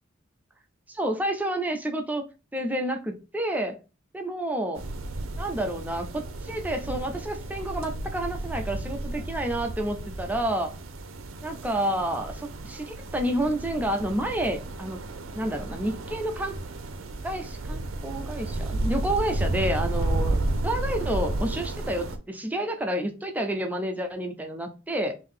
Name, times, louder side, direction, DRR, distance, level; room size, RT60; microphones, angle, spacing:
voice 1, 0.9-2.2 2.5-3.8 4.1-4.8 5.4-10.7 11.4-15.0 15.3-16.6 17.2-25.1, right 1 dB, 10° right, 4 dB, 0.4 m, -29 dB
sound 1, 4.8-22.2, right 2 dB, 80° right, 0.6 m, -32 dB
3.6 x 2.6 x 3.6 m, 0.31 s
head